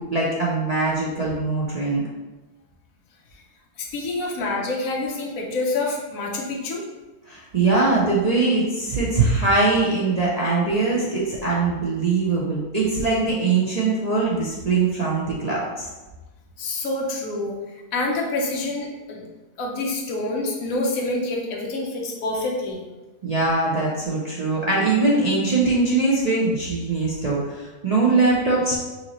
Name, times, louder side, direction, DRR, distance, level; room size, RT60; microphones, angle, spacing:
voice 1, 0.0-2.0 7.3-15.9 23.2-28.8, right 3 dB, 45° right, -6 dB, 0.5 m, -22 dB
voice 2, 3.8-6.8 16.6-17.5 17.9-19.2 19.6-22.8, left 2 dB, 65° left, -1 dB, 1.2 m, -27 dB
5.8 x 2.8 x 2.9 m, 1.1 s
omnidirectional pair, 1.6 m